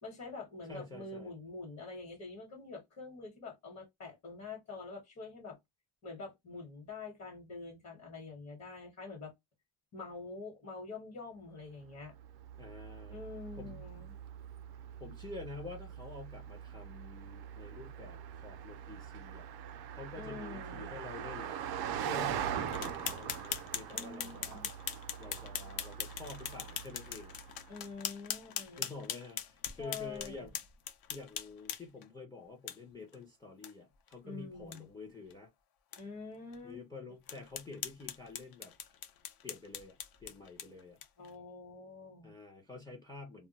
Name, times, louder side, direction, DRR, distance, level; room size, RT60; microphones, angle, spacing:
voice 1, 0.0-5.6 6.0-9.3 9.9-12.1 13.1-14.1 20.2-21.0 23.9-24.7 27.7-28.9 29.7-30.5 34.2-34.9 36.0-36.8 37.1-37.2 41.2-42.3, left 3 dB, 40° left, 1.0 m, -46 dB
voice 2, 0.7-1.3 12.6-13.2 13.6-13.8 15.0-19.5 19.9-24.6 25.2-27.4 28.8-30.5 31.1-35.5 36.6-38.7 39.4-41.0 42.2-43.5, left 3 dB, 10° left, 0.5 m, -48 dB
Car passing by, 12.0-27.7, right 9 dB, 65° right, 0.5 m, -42 dB
sound 1, 22.7-32.0 32.7-32.8 33.1-33.2 33.6-33.7 34.1-34.2 34.6-34.8 35.3-35.4 35.9-36.0 36.5-36.6 37.3-41.3, left 9 dB, 55° left, 0.5 m, -41 dB
2.2 x 2.1 x 3.8 m
cardioid pair, 180°, 43 cm